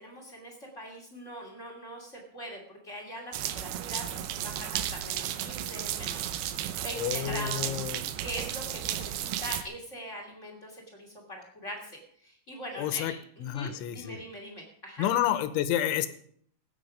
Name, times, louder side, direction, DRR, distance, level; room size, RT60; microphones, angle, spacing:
voice 1, 0.0-6.4 6.8-7.8 8.2-15.1, equal, 20° left, 1 dB, 2.0 m, -42 dB
sound 1, 3.3-9.6, right 11 dB, 80° right, 2.3 m, -34 dB
voice 2, 7.0-8.0 12.8-13.1 13.4-14.2 15.0-16.1, left 11 dB, 85° left, 11 dB, 3.2 m, -29 dB
17.0 x 9.2 x 5.2 m, 0.64 s
omnidirectional pair, 5.4 m